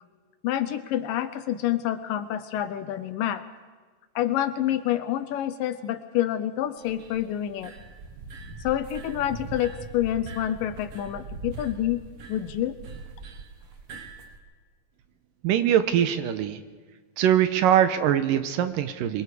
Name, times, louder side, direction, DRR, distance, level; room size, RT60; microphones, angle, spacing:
voice 1, 0.4-3.4 4.2-7.7 8.6-12.0 12.3-12.8, left 12 dB, 75° left, 12 dB, 2.2 m, -28 dB
sound 1, 6.8-14.4, right 3 dB, 50° right, 1.8 m, -41 dB
voice 2, 15.4-16.6 17.2-19.2, right 10 dB, 75° right, 10 dB, 2.3 m, -22 dB
25.5 x 23.0 x 4.8 m, 1.4 s
omnidirectional pair, 4.3 m